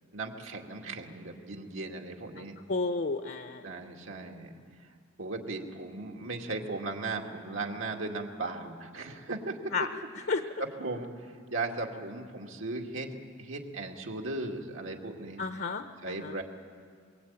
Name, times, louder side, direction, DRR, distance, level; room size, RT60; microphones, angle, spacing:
voice 1, 0.1-2.6 3.6-4.5 5.2-9.7 10.6-11.1 11.5-13.1 13.4-15.4 16.0-16.4, right 3 dB, 75° right, 1 dB, 2.4 m, -37 dB
voice 2, 2.7-3.6 9.7-9.9 10.3-10.4 15.4-16.3, left 4 dB, 55° left, 8 dB, 0.9 m, -31 dB
23.0 x 22.5 x 9.0 m, 2.1 s
head